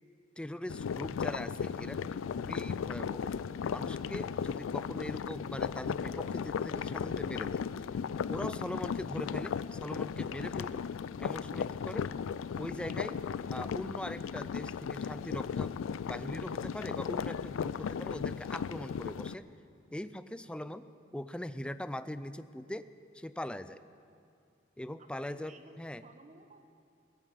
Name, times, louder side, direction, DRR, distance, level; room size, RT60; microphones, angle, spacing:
voice 1, 0.4-3.3 3.7-7.6 8.3-10.8 11.2-12.1 12.6-13.2 13.5-15.8 16.1-19.5 19.9-20.9 21.1-23.8 24.8-26.0, left 1 dB, 5° left, 13 dB, 0.4 m, -41 dB
sound 1, 0.7-19.3, left 6 dB, 85° left, 0.4 m, -36 dB
voice 2, 25.0-26.6, right 2 dB, 40° right, 8 dB, 1.0 m, -56 dB
17.5 x 10.5 x 7.5 m, 2.4 s
head